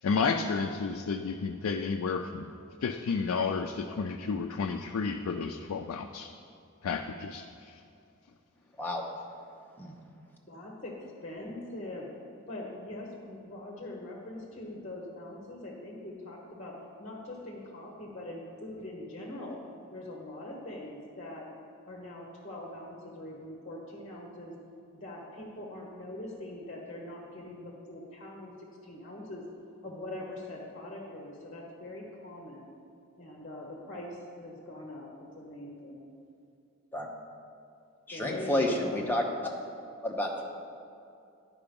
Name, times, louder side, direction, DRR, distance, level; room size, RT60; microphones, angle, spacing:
voice 1, 0.0-2.5 2.8-6.3 6.8-7.8, left 5 dB, 80° left, 4 dB, 0.4 m, -31 dB
voice 2, 10.5-10.9 11.2-12.1 12.5-16.7 17.0-19.6 19.9-21.5 21.8-24.5 24.9-28.5 28.8-29.4 29.8-32.7 33.2-35.1 35.4-36.1 38.1-39.1, left 1 dB, 35° left, -1 dB, 1.0 m, -42 dB
voice 3, 38.1-39.2 40.0-40.4, left 1 dB, 10° left, 0 dB, 0.8 m, -30 dB
10.5 x 4.9 x 5.2 m, 2.5 s
head